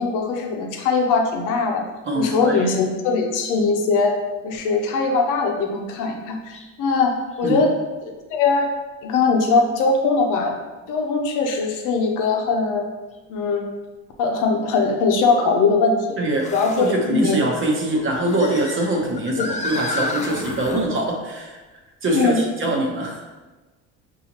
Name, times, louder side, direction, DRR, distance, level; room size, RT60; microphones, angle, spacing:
voice 1, 0.0-1.8 2.1-4.1 4.4-7.7 8.0-8.7 9.0-10.5 10.9-12.8 13.3-13.6 14.2-16.2 16.5-17.4 19.4-19.5 22.1-22.4, left 4 dB, 70° left, 2 dB, 0.8 m, -21 dB
voice 2, 2.1-2.7 7.4-7.6 16.2-16.5 16.8-21.6 22.0-23.3, right 1 dB, 40° right, 0 dB, 0.8 m, -23 dB
sound 1, 6.5-6.7 7.3-7.4 9.5-9.6 13.1-13.2 16.4-17.0 17.9-20.9, left 3 dB, 20° left, 0.4 m, -31 dB
5.6 x 2.7 x 2.9 m, 1.2 s
cardioid pair, 120°, 32 cm